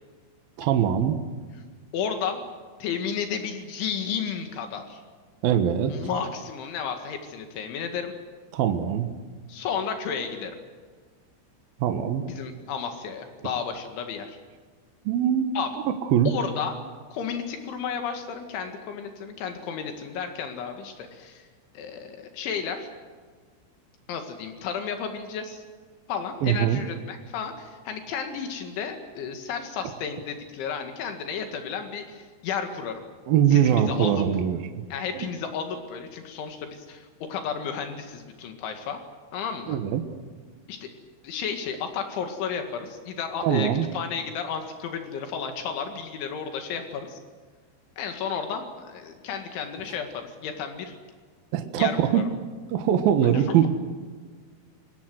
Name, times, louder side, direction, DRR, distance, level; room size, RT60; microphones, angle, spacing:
voice 1, 0.6-1.2 5.4-6.0 8.5-9.1 11.8-12.3 15.1-15.5 16.1-16.3 26.4-26.8 33.3-34.6 35.1-35.3 39.7-40.0 43.4-43.9 51.5-52.2 52.7-53.7, right 9 dB, 65° right, 7 dB, 2.7 m, -22 dB
voice 2, 1.9-2.4 2.8-5.0 5.9-8.1 9.5-10.5 12.3-14.4 15.6-15.7 16.3-16.7 17.1-21.5 21.8-22.9 24.1-25.6 26.1-33.0 33.5-34.2 34.9-39.0 39.3-39.8 40.7-40.9 41.2-47.2 48.0-50.9 51.8-52.2 53.3-53.7, left 6 dB, 80° left, 6 dB, 4.3 m, -32 dB
28.0 x 21.0 x 7.9 m, 1.5 s
omnidirectional pair, 5.3 m